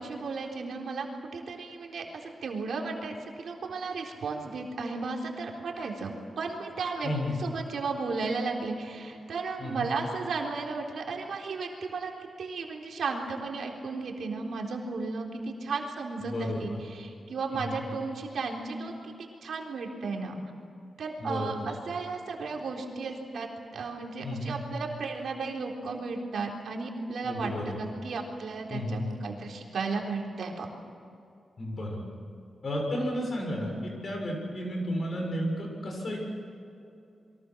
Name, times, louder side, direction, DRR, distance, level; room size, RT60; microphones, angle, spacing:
voice 1, 0.0-7.1 7.4-12.1 12.4-19.1 19.4-20.3 21.0-30.7, right 4 dB, 70° right, 0 dB, 3.9 m, -34 dB
voice 2, 7.0-7.3 9.6-9.9 16.2-16.8 17.5-17.8 21.2-21.7 24.2-24.6 27.2-27.8 28.7-29.1 31.6-32.0 32.6-36.2, equal, 40° left, 1 dB, 7.1 m, -32 dB
29.0 x 23.5 x 6.4 m, 2.6 s
wide cardioid pair, 180°, 0 cm